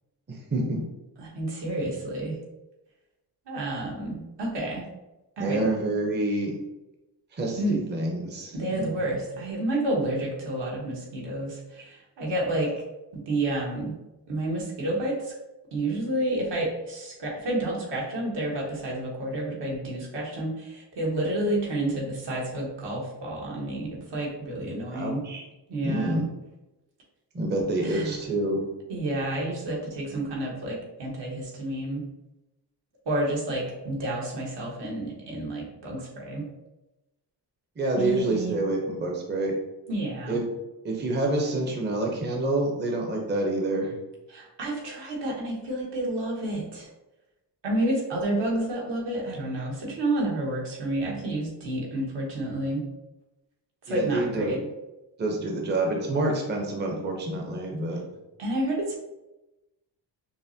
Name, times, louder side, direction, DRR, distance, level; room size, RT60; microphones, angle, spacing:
voice 1, 0.3-0.8 5.4-6.6 7.3-8.8 24.9-25.4 25.8-26.3 27.3-28.7 37.8-39.5 40.3-40.4 40.8-44.0 53.9-54.6 55.2-58.0, right 2 dB, 25° right, 0 dB, 0.7 m, -27 dB
voice 2, 1.2-2.3 3.5-4.9 5.4-5.7 7.5-7.8 8.5-12.7 13.3-13.9 14.3-15.3 15.7-25.2 25.7-26.3 27.8-28.2 28.9-32.0 33.1-36.5 37.9-38.6 39.9-40.4 44.3-46.9 47.6-52.8 53.9-54.6 58.4-59.0, right 1 dB, 75° right, -3 dB, 1.3 m, -30 dB
5.6 x 2.1 x 2.7 m, 1.0 s
cardioid pair, 100°, 42 cm